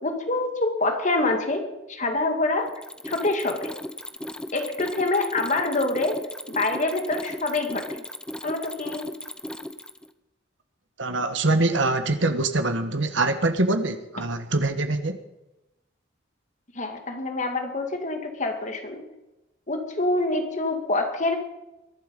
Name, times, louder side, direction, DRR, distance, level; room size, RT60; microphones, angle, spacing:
voice 1, 0.0-2.7 3.0-3.7 4.5-8.0 8.4-9.1 16.8-19.0 19.7-21.4, left 2 dB, 40° left, 4 dB, 2.2 m, -26 dB
Mechanisms, 2.7-10.1, left 1 dB, 5° left, 0.7 m, -36 dB
voice 2, 11.0-15.2, right 2 dB, 70° right, 7 dB, 1.4 m, -24 dB
22.0 x 12.0 x 5.3 m, 0.96 s
head